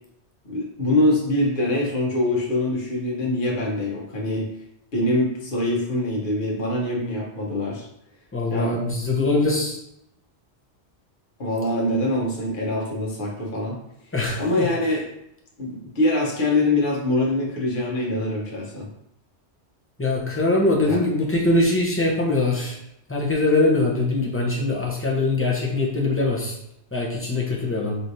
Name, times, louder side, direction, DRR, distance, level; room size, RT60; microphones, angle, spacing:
voice 1, 0.4-4.5 4.9-7.8 8.5-8.8 11.4-13.8 14.4-15.1 15.6-18.9 20.8-21.0, left 1 dB, 50° left, -3 dB, 1.1 m, -24 dB
voice 2, 8.3-9.8 14.1-14.7 20.0-22.8 23.1-26.6 26.9-28.0, left 2 dB, 15° left, -2 dB, 0.7 m, -22 dB
5.5 x 3.1 x 2.7 m, 0.80 s
omnidirectional pair, 1.2 m